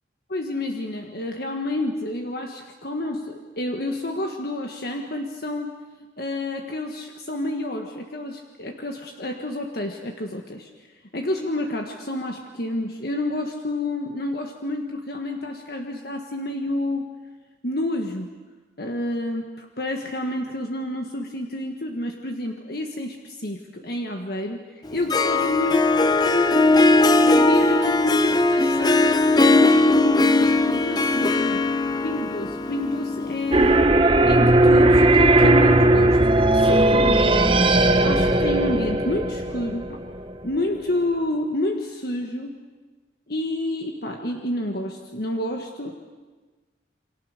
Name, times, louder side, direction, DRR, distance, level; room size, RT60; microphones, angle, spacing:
voice 1, 0.3-5.7 6.2-10.7 11.1-17.2 17.6-18.3 18.8-24.6 24.9-26.7 27.2-31.6 32.0-33.8 34.3-37.6 38.0-40.0 40.4-42.6 43.3-45.9, left 1 dB, 55° left, 3 dB, 1.6 m, -29 dB
Harp, 24.8-33.8, left 2 dB, 20° left, 0.7 m, -19 dB
sound 1, 33.5-40.3, right 2 dB, 25° right, 1.0 m, -17 dB
28.5 x 24.5 x 6.7 m, 1.3 s
head